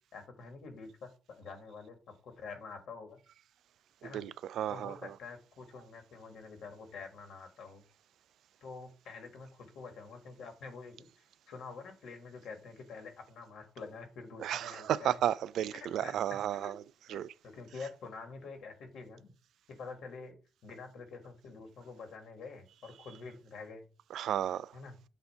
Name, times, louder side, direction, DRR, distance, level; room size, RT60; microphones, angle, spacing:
voice 1, 0.1-1.1 1.4-3.2 4.0-4.3 4.7-7.8 8.6-15.2 15.7-16.8 17.1-19.3 19.7-20.4 20.6-23.9 24.7-25.0, left 4 dB, 75° left, 1.8 m, -47 dB
voice 2, 4.1-5.1 14.4-16.7 17.1-17.3 24.1-24.7, right 11 dB, 80° right, 0.3 m, -33 dB
7.9 x 2.7 x 5.6 m
cardioid pair, 145°, 0 cm